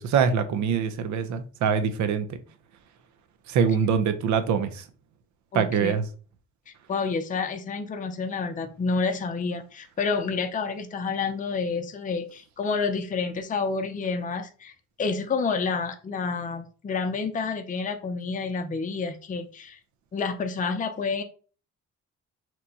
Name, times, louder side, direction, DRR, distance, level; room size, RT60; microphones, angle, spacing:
voice 1, 0.0-2.3 3.5-4.9 5.5-6.0, right 6 dB, 70° right, 0.6 m, -24 dB
voice 2, 5.5-5.9 6.7-19.8 20.1-21.2, left 4 dB, 25° left, 0.5 m, -29 dB
3.0 x 2.2 x 3.9 m
cardioid pair, 90°, 30 cm